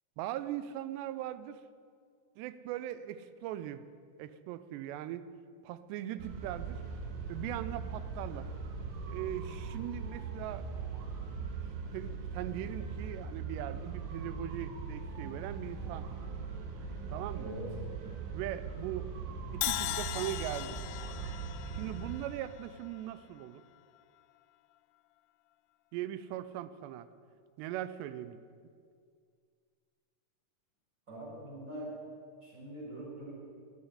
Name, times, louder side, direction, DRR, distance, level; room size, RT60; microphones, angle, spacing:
voice 1, 0.2-1.6 2.4-3.8 4.2-5.3 5.6-6.8 7.3-8.5 9.1-10.7 11.9-16.1 17.1-17.5 18.3-19.1 19.5-20.8 21.7-23.6 25.9-27.1 27.6-28.5, right 12 dB, 85° right, 13 dB, 2.7 m, -40 dB
sound 1, 6.2-22.1, right 5 dB, 70° right, 3.0 m, -40 dB
Crash cymbal, 19.6-23.7, left 15 dB, 85° left, 2.6 m, -39 dB
voice 2, 31.1-31.9 32.4-33.3, right 1 dB, 20° right, -6 dB, 5.0 m, -43 dB
10.5 x 9.6 x 10.0 m, 2.1 s
omnidirectional pair, 4.9 m